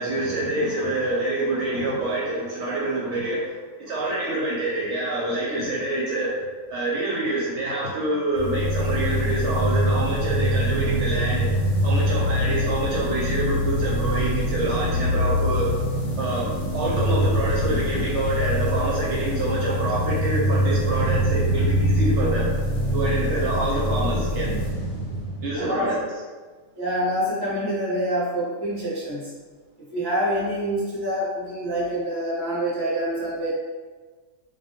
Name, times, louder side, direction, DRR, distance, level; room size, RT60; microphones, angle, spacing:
voice 1, 0.0-3.5 3.8-6.3 6.7-11.5 11.8-15.7 16.2-22.5 22.9-24.6 25.4-26.0, right 2 dB, 70° right, -6 dB, 0.8 m, -26 dB
sound 1, 8.4-25.9, equal, 85° left, 1.0 m, -24 dB
voice 2, 25.5-25.9 26.8-29.3 29.9-33.5, equal, 25° right, -7 dB, 0.6 m, -26 dB
2.2 x 2.2 x 2.7 m, 1.4 s
omnidirectional pair, 1.4 m